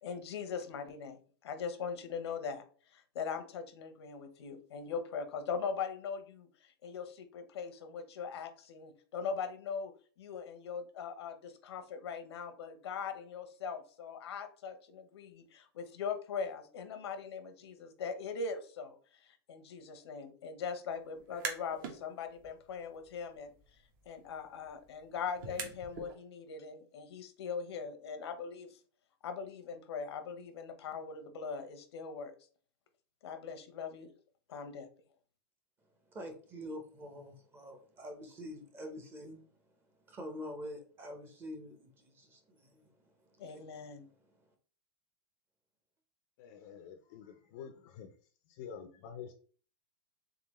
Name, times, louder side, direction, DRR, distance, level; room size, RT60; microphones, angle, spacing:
voice 1, 0.0-2.6 2.9-6.5 6.8-9.9 10.2-23.5 24.1-28.8 29.2-32.3 33.2-34.1 34.5-34.9 43.4-44.1, left 6 dB, 85° left, 0.8 m, -41 dB
sound 1, 21.2-22.0 22.4-26.1, right 5 dB, 50° right, 1.0 m, -45 dB
voice 2, 36.1-39.5 39.9-43.9 44.3-44.5, equal, 15° right, 0.7 m, -47 dB
voice 3, 46.4-48.1 48.5-49.3, left 7 dB, 45° left, 0.5 m, -48 dB
3.7 x 3.5 x 3.0 m
supercardioid pair, 155°, 13 cm